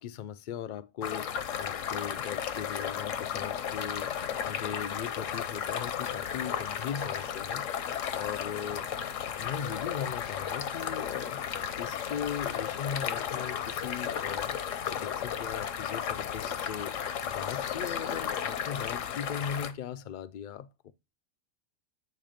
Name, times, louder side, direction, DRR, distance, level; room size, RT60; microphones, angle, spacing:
voice 1, 0.0-1.3 1.6-4.1 4.5-7.7 8.1-8.9 9.4-11.4 11.8-14.5 14.9-17.0 17.2-20.9, left 8 dB, 60° left, 0.5 m, -39 dB
sound 1, 1.0-19.7, left 8 dB, 80° left, 1.1 m, -34 dB
8.7 x 3.3 x 5.1 m
omnidirectional pair, 1.3 m